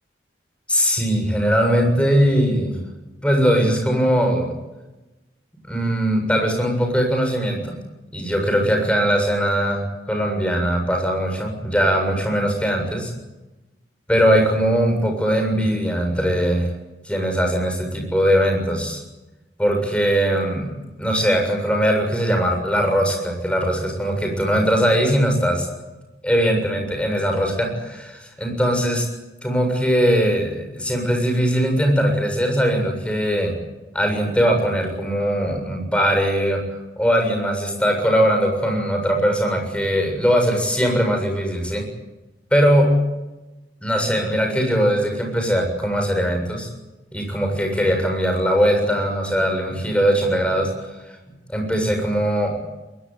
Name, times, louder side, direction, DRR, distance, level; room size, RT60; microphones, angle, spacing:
voice 1, 0.7-2.7 3.2-4.5 5.7-7.7 8.1-13.1 14.1-16.7 17.0-19.0 19.6-20.7 21.0-25.7 26.2-29.1 29.4-33.5 33.9-36.6 37.0-41.8 42.5-42.9 43.8-46.7 47.1-50.7 51.5-52.6, equal, 5° left, 3 dB, 7.3 m, -20 dB
22.5 x 21.5 x 9.5 m, 1.1 s
head